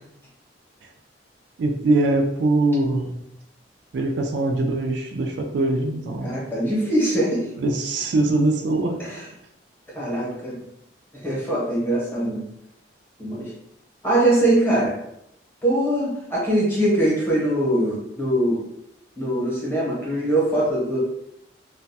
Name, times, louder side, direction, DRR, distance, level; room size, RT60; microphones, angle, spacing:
voice 1, 1.6-3.2 3.9-6.4 7.6-9.0, right 2 dB, 65° right, 3 dB, 0.3 m, -22 dB
voice 2, 6.2-7.5 9.0-9.2 9.9-10.6 11.1-12.4 13.2-13.5 14.0-15.0 15.6-18.6 19.2-21.0, right 1 dB, 10° left, -6 dB, 0.8 m, -22 dB
2.4 x 2.2 x 2.6 m, 0.79 s
head